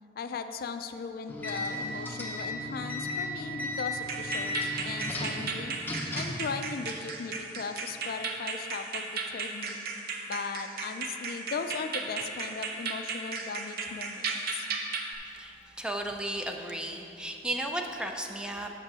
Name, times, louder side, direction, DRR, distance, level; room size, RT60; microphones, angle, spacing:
voice 1, 0.2-9.8 10.3-14.7, left 5 dB, 55° left, 8 dB, 0.4 m, -38 dB
sound 1, 1.3-6.5, left 1 dB, 10° left, 0.9 m, -35 dB
sound 2, 4.0-15.1, right 4 dB, 55° right, 0.7 m, -36 dB
voice 2, 15.2-18.7, right 1 dB, 5° right, 3 dB, 0.4 m, -35 dB
6.9 x 5.3 x 6.1 m, 2.8 s
head